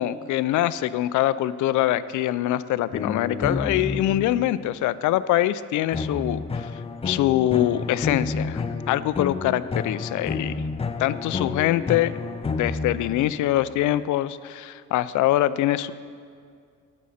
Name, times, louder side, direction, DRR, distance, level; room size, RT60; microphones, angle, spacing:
voice 1, 0.0-6.7 7.0-10.5 11.0-12.1 12.6-15.9, left 13 dB, 75° left, 16 dB, 0.5 m, -24 dB
sound 1, 2.9-4.6 5.9-13.7, left 4 dB, 20° left, 0.5 m, -30 dB
17.5 x 6.3 x 4.2 m, 2.2 s
cardioid pair, 90°, 30 cm